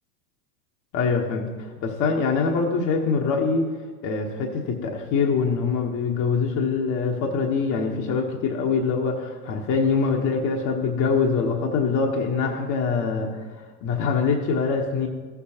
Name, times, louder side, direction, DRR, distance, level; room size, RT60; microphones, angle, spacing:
voice 1, 0.9-3.7 4.0-13.3 13.8-15.1, left 5 dB, 40° left, 1 dB, 1.1 m, -24 dB
14.5 x 6.9 x 2.9 m, 1.5 s
hypercardioid pair, 95°, 44 cm